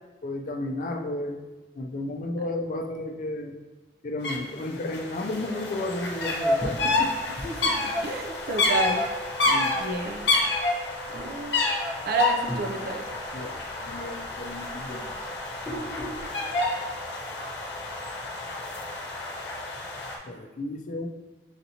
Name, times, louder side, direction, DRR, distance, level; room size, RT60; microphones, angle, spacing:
voice 1, 0.2-1.4 1.7-3.6 4.0-7.1 7.6-7.7 9.4-9.8 13.3-15.1 20.2-21.1, left 2 dB, 45° left, 4 dB, 0.4 m, -33 dB
sound 1, 4.2-4.4 4.6-20.2, left 2 dB, 70° left, 0.8 m, -29 dB
sound 2, 6.6-9.5 9.8-10.6 11.1-12.0 12.3-13.6 13.9-16.3, equal, 10° left, 0.7 m, -39 dB
voice 2, 7.4-7.8 8.0-9.0 9.8-10.4 11.1-11.6 12.1-13.0, right 2 dB, 55° right, 4 dB, 0.5 m, -30 dB
6.5 x 2.9 x 2.7 m, 1.2 s
head